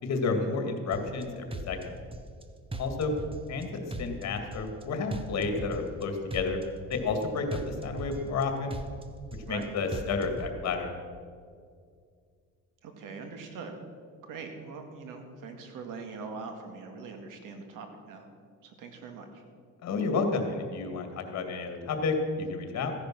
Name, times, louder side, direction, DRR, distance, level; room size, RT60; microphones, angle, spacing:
voice 1, 0.0-1.9 2.8-3.1 3.5-3.7 4.0-6.6 6.9-8.8 9.5-10.9 19.8-22.9, left 4 dB, 55° left, 5 dB, 2.2 m, -31 dB
sound 1, 0.9-1.2 1.5-2.4 2.7-3.6 3.9-4.8 5.1-6.0 6.3-7.2 7.5-8.4 8.7-9.6 9.9-10.5, right 1 dB, 15° right, 0.9 m, -38 dB
voice 2, 12.8-13.8 14.2-18.3 18.6-19.4, right 4 dB, 85° right, 5 dB, 2.2 m, -42 dB
15.5 x 10.5 x 6.1 m, 2.2 s
cardioid pair, 125°, 31 cm